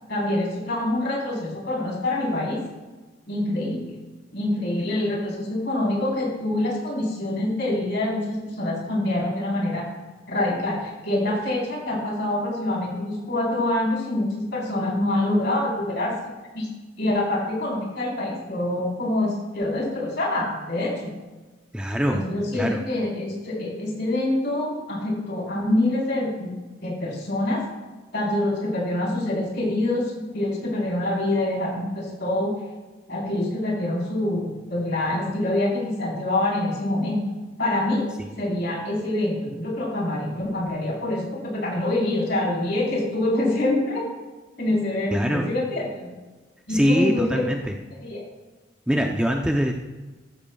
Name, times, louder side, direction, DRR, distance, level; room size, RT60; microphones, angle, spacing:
voice 1, 0.1-2.6 3.3-4.0 4.3-9.9 10.3-16.2 16.5-16.7 17.0-21.1 22.1-26.5 26.8-27.6 28.1-32.5 33.1-37.3 37.6-38.1 38.4-44.1 44.6-46.1 46.7-47.5 48.0-48.2, left 1 dB, 55° left, -3 dB, 3.9 m, -25 dB
voice 2, 21.7-22.8 45.1-45.5 46.7-47.7 48.9-49.7, equal, 5° right, 1 dB, 0.5 m, -23 dB
14.0 x 13.5 x 2.3 m, 1.2 s
head